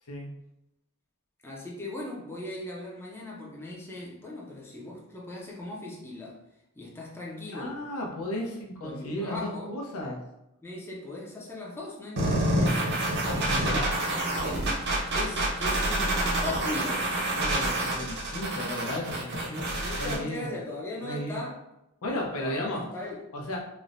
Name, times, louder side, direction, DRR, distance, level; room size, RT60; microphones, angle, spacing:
voice 1, 1.4-6.4 6.8-7.8 8.8-9.7 10.6-13.0 15.1-17.1 19.5-21.6 22.4-23.2, left 2 dB, 10° left, -4 dB, 0.4 m, -38 dB
voice 2, 7.5-10.2 13.3-14.1 17.3-20.5 21.0-21.4 22.0-22.8 23.3-23.6, left 1 dB, 85° left, -1 dB, 0.6 m, -34 dB
sound 1, 12.2-20.2, right 1 dB, 50° right, 0.6 m, -27 dB
3.1 x 2.1 x 2.5 m, 0.88 s
head